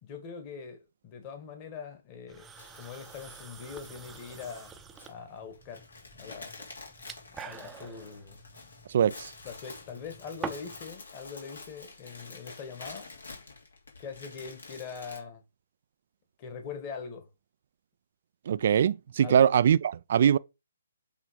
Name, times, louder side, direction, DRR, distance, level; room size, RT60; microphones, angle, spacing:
voice 1, 0.0-2.5 2.7-5.8 6.2-6.6 7.4-8.4 9.0-9.1 9.4-13.1 14.0-15.4 16.4-17.3 19.2-19.5, left 6 dB, 30° left, 1.9 m, -42 dB
sound 1, 2.3-10.9, right 5 dB, 10° right, 0.8 m, -46 dB
sound 2, 2.6-15.2, left 3 dB, 75° left, 2.9 m, -48 dB
voice 2, 18.5-20.4, right 8 dB, 50° right, 0.4 m, -22 dB
8.2 x 3.5 x 4.7 m
figure-of-eight pair, 135°, 0 cm